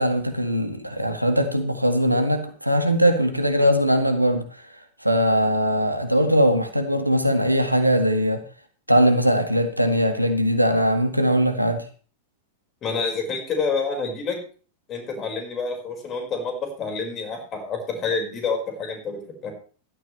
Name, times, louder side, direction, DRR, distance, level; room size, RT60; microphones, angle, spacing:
voice 1, 0.0-4.4 5.0-8.4 8.9-11.8, equal, 90° right, 7 dB, 1.8 m, -20 dB
voice 2, 12.8-14.4 14.9-19.5, left 4 dB, 30° left, 3 dB, 5.3 m, -28 dB
16.5 x 12.5 x 3.4 m, 0.39 s
figure-of-eight pair, 90°, 0 cm